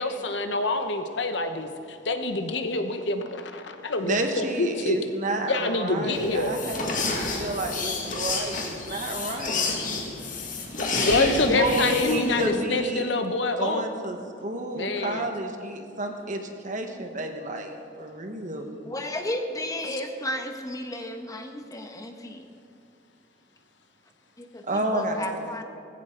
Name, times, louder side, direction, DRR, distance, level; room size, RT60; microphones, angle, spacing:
voice 1, 0.0-5.0 5.5-6.5 10.1-10.2 11.0-13.8 14.7-15.2, left 2 dB, 65° left, 7 dB, 1.0 m, -26 dB
voice 2, 4.0-9.7 10.9-13.1 13.6-18.7 24.6-25.6, right 1 dB, 45° right, 4 dB, 1.4 m, -30 dB
sound 1, 6.1-12.5, left 3 dB, 45° left, 2.0 m, -30 dB
voice 3, 18.8-22.5 24.4-25.6, left 1 dB, 20° left, 4 dB, 1.1 m, -33 dB
18.5 x 15.5 x 3.9 m, 2.4 s
head